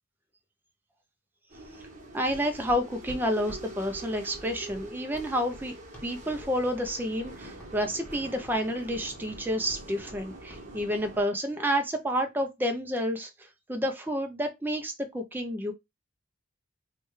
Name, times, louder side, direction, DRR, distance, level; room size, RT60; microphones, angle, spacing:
sound 1, 1.5-11.2, right 2 dB, 35° right, 1.2 m, -45 dB
voice 1, 2.1-5.7 6.0-15.7, equal, 10° right, 0.5 m, -30 dB
Run, 2.3-6.5 6.8-7.4 7.6-10.2 10.5-10.7, right 1 dB, 10° left, 1.2 m, -47 dB
4.6 x 2.3 x 3.1 m
head